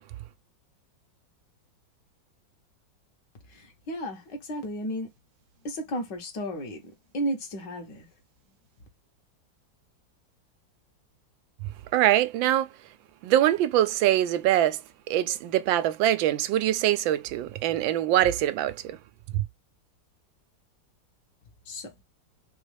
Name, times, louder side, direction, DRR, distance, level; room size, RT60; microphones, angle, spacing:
voice 1, 3.5-5.1 5.6-8.1 21.7-21.9, equal, 70° left, 1.8 m, -34 dB
voice 2, 11.9-12.7 13.2-14.8 15.1-18.8 19.3-19.4, right 12 dB, 90° right, 1.3 m, -23 dB
4.2 x 3.1 x 3.2 m
omnidirectional pair, 2.1 m